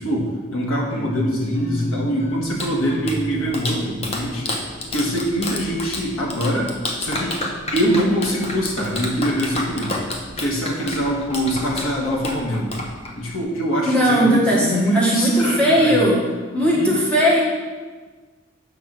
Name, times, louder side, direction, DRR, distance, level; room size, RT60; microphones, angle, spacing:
voice 1, 0.0-4.6 4.9-6.7 7.0-7.4 7.7-10.0 10.4-12.8 13.1-16.0 16.6-16.9, equal, 85° left, -2 dB, 1.6 m, -23 dB
sound 1, 0.9-6.0, equal, 55° left, 2.1 m, -33 dB
Clapping, 2.2-13.4, left 2 dB, 30° left, 0.8 m, -30 dB
voice 2, 13.8-16.2 16.5-17.4, equal, 5° left, -6 dB, 1.5 m, -18 dB
6.0 x 4.9 x 6.1 m, 1.4 s
head